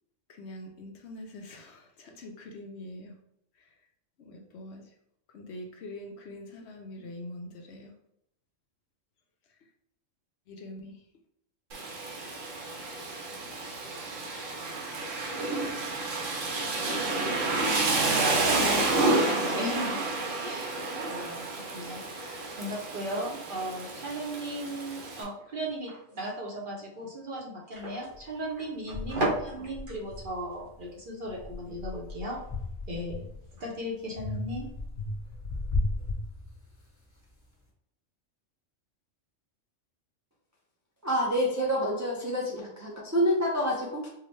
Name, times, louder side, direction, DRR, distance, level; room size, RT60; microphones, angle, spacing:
voice 1, 0.3-3.1 4.2-4.9 5.3-7.9 10.5-11.0, left 1 dB, 65° left, 2 dB, 0.8 m, -44 dB
Rain, 11.7-25.2, right 2 dB, 75° right, 1.2 m, -30 dB
voice 2, 18.2-20.1 20.4-32.4 32.9-34.7, right 1 dB, 50° right, -2 dB, 0.8 m, -36 dB
sound 1, 28.1-28.2 28.9-30.8 31.2-33.6 34.2-36.9, left 2 dB, 15° left, 1.2 m, -35 dB
voice 3, 41.0-44.1, equal, 30° right, -5 dB, 0.3 m, -27 dB
4.7 x 2.1 x 3.1 m, 0.78 s
omnidirectional pair, 1.3 m